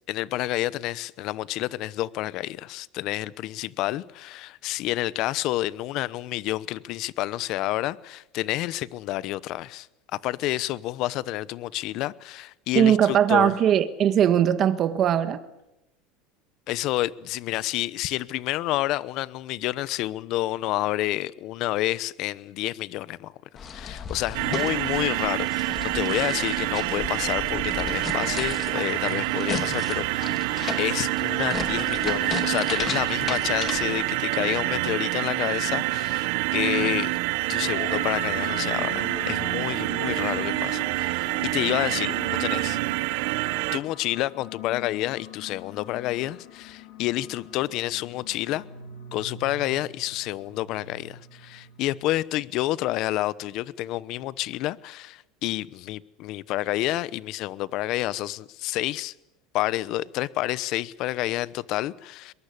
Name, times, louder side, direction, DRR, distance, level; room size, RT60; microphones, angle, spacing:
voice 1, 0.1-9.9 10.1-13.5 16.7-23.3 23.7-30.5 30.8-37.2 37.5-42.1 42.4-42.8 43.7-48.7 49.1-59.1 59.5-62.3, left 16 dB, 50° left, 0.9 m, -29 dB
voice 2, 12.7-15.4, right 9 dB, 35° right, 1.6 m, -20 dB
sound 1, 23.6-33.9, left 6 dB, 30° left, 3.0 m, -35 dB
sound 2, 24.3-43.8, right 20 dB, 70° right, 1.0 m, -27 dB
sound 3, 37.6-52.4, left 8 dB, 80° left, 5.7 m, -42 dB
22.5 x 22.0 x 8.4 m
supercardioid pair, 145°, 0 cm